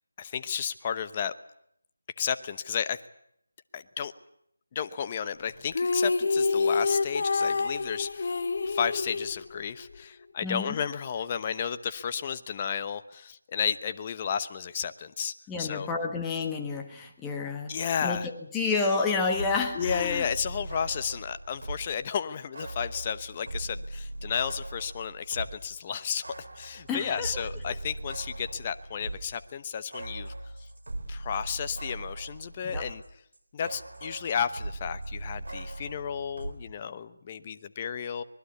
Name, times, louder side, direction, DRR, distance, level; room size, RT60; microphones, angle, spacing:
voice 1, 0.2-1.3 2.2-3.0 3.7-4.1 4.7-8.4 8.6-15.9 17.7-18.3 19.7-26.2 26.6-30.3 31.1-33.0 33.5-38.2, left 7 dB, 25° left, 11 dB, 0.9 m, -32 dB
sound 1, 5.7-10.0, left 4 dB, 50° left, 1.0 m, -27 dB
voice 2, 10.4-10.8 15.5-17.7 18.0-18.2 18.5-20.2 26.9-27.4 32.6-32.9, left 4 dB, 10° left, 2 dB, 1.6 m, -30 dB
sound 2, 19.1-22.0 22.5-25.7 26.0-33.1 33.3-36.5, right 2 dB, 75° right, 4.2 m, -39 dB
24.5 x 21.0 x 8.3 m, 0.74 s
figure-of-eight pair, 165°, 0 cm